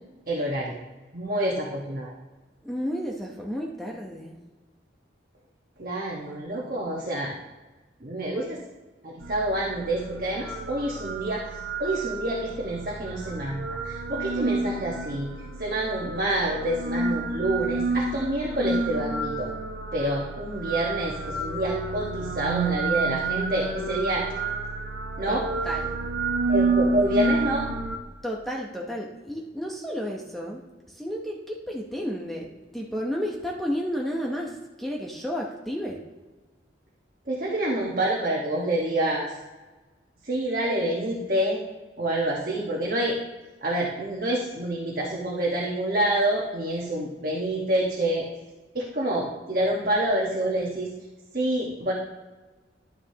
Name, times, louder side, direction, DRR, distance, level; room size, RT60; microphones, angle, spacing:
voice 1, 0.3-0.8 1.1-2.1 5.8-7.3 8.0-8.6 9.0-15.3 15.6-19.5 19.9-24.2 25.2-25.4 26.5-27.7 37.3-39.4 40.2-41.6 42.0-43.2 43.6-48.3 48.7-50.9 51.3-51.9, right 1 dB, 50° right, -4 dB, 1.3 m, -27 dB
voice 2, 2.6-4.4 8.3-8.4 25.3-26.0 28.2-32.5 32.7-36.0, equal, ahead, -2 dB, 0.8 m, -32 dB
sound 1, 9.2-28.0, right 3 dB, 80° right, 0.9 m, -30 dB
11.0 x 9.8 x 2.9 m, 1.2 s
head